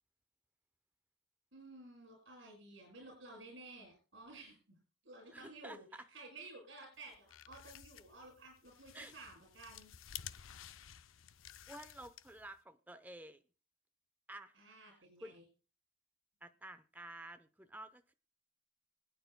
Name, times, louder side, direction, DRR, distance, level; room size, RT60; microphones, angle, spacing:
voice 1, 1.5-4.8 5.0-9.9 14.6-15.4, right 2 dB, 65° right, 7.0 m, -54 dB
voice 2, 5.3-6.1 8.9-9.1 11.7-13.4 14.3-14.6 15.2-15.4 16.4-18.1, right 1 dB, 10° right, 0.6 m, -51 dB
sound 1, 7.0-12.6, left 10 dB, 80° left, 0.5 m, -53 dB
26.0 x 9.2 x 2.2 m
head